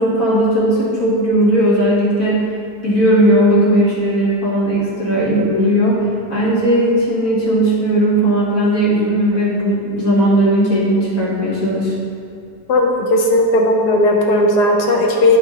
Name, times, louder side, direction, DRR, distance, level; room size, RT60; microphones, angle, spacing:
voice 1, 0.0-2.5 2.8-11.9, right 1 dB, 55° left, -9 dB, 2.1 m, -16 dB
voice 2, 12.7-15.4, left 1 dB, 75° left, 0 dB, 1.3 m, -15 dB
9.9 x 5.1 x 2.8 m, 2.4 s
omnidirectional pair, 1.8 m